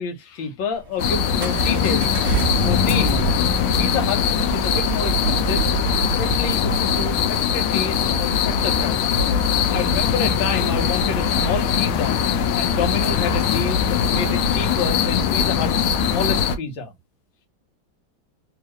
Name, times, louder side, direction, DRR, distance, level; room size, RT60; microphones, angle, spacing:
voice 1, 0.0-2.2 2.6-3.2 3.8-4.2 4.5-5.6 6.0-9.0 9.7-12.2 12.5-16.9, left 5 dB, 70° left, 1.7 m, -28 dB
Accelerating revving vroom, 0.7-7.3, right 6 dB, 55° right, 0.7 m, -30 dB
sound 1, 1.0-16.6, left 7 dB, 85° left, 1.5 m, -21 dB
3.6 x 3.0 x 3.0 m
omnidirectional pair, 2.2 m